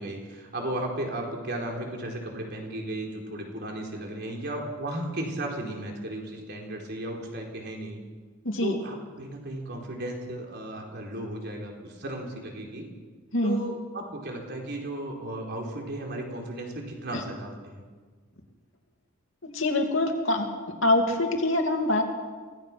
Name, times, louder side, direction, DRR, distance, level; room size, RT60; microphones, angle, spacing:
voice 1, 0.0-8.0 8.6-12.9 13.4-17.8, right 1 dB, 50° right, 0 dB, 4.0 m, -35 dB
voice 2, 8.4-8.8 13.3-13.6 17.1-17.2 19.4-20.5 20.8-22.0, left 1 dB, 60° left, 3 dB, 2.7 m, -24 dB
24.5 x 18.0 x 6.1 m, 1.5 s
head